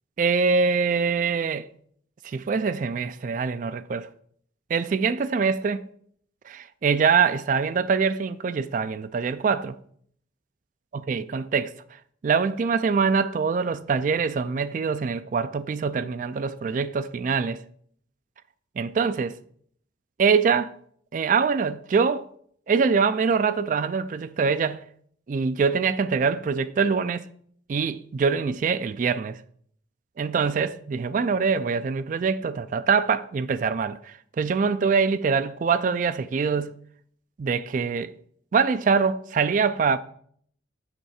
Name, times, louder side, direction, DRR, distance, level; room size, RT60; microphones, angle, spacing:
voice 1, 0.2-1.7 2.2-4.1 4.7-5.9 6.5-9.8 10.9-11.7 12.2-17.6 18.8-19.4 20.2-20.7 21.1-22.3 22.7-24.9 25.3-27.3 27.7-29.4 30.2-36.8 37.4-38.1 38.5-40.0, right 5 dB, 45° right, 0.3 m, -24 dB
8.0 x 3.3 x 6.4 m
head